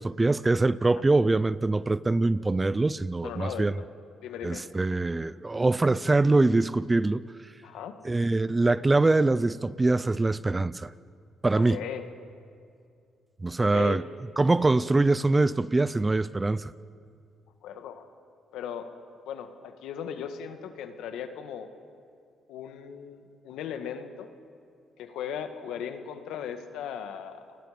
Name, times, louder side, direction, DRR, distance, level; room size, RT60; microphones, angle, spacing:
voice 1, 0.0-3.7 4.4-7.2 8.0-10.9 11.4-11.8 13.4-14.0 14.4-16.7, right 2 dB, 20° right, 0.6 m, -23 dB
voice 2, 3.2-3.9 4.2-4.6 7.6-8.0 11.7-12.1 13.7-14.0 17.6-18.1 18.5-18.9 19.3-21.7 22.5-24.3 25.0-27.6, left 8 dB, 85° left, 1.7 m, -37 dB
30.0 x 21.0 x 5.2 m
cardioid pair, 90°, 0 cm